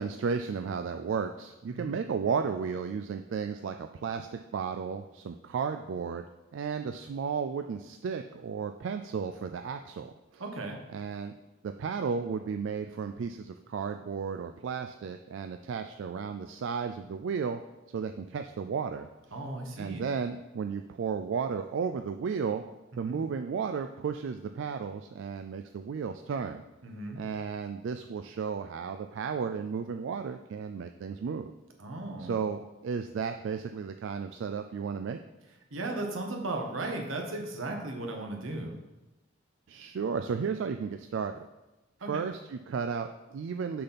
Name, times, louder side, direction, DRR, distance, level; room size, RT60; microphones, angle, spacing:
voice 1, 0.0-6.2 6.5-10.4 10.9-11.3 11.6-17.6 17.9-19.1 19.8-22.6 23.0-26.6 27.2-31.5 32.2-35.2 39.7-41.4 42.1-43.8, right 6 dB, 65° right, 7 dB, 0.3 m, -34 dB
voice 2, 10.4-10.8 19.3-20.1 22.9-23.2 26.8-27.2 31.8-32.4 35.7-38.8 42.0-42.2, right 2 dB, 85° right, 2 dB, 1.2 m, -36 dB
6.5 x 5.8 x 4.1 m, 1.0 s
head